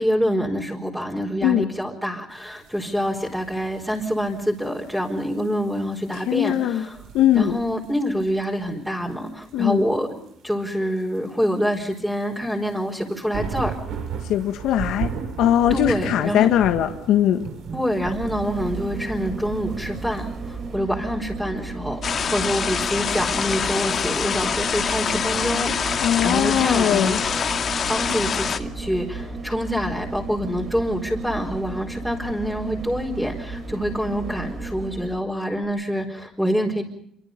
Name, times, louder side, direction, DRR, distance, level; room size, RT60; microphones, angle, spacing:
voice 1, 0.0-7.0 7.3-10.2 10.4-13.7 15.7-16.5 17.7-27.2 27.9-36.8, equal, ahead, -2 dB, 4.8 m, -26 dB
sound 1, 2.3-8.7 9.0-10.3 11.0-20.8, right 6 dB, 75° right, 6.9 m, -36 dB
voice 2, 6.1-6.9 7.1-7.6 9.5-9.8 14.3-15.1 15.4-17.5 26.0-27.2, left 11 dB, 80° left, 6 dB, 1.7 m, -20 dB
sound 2, 17.9-35.3 35.6-35.7, right 3 dB, 45° right, 5.4 m, -34 dB
sound 3, 22.0-28.6, left 7 dB, 45° left, 2.2 m, -25 dB
27.5 x 24.5 x 5.4 m, 0.70 s
cardioid pair, 110°, 0 cm